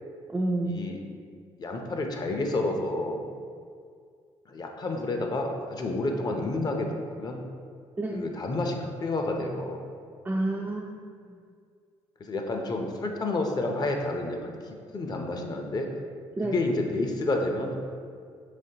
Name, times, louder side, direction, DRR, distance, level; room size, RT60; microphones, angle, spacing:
voice 1, 0.3-0.8 8.0-8.3 10.2-11.3 16.4-16.5, right 2 dB, 15° right, 0 dB, 0.4 m, -29 dB
voice 2, 1.6-3.3 4.5-6.9 7.2-7.4 8.1-9.8 12.2-14.5 14.9-15.9 16.4-17.8, left 2 dB, 40° left, 3 dB, 0.6 m, -29 dB
5.0 x 3.5 x 2.9 m, 2.2 s
cardioid pair, 85°, 11 cm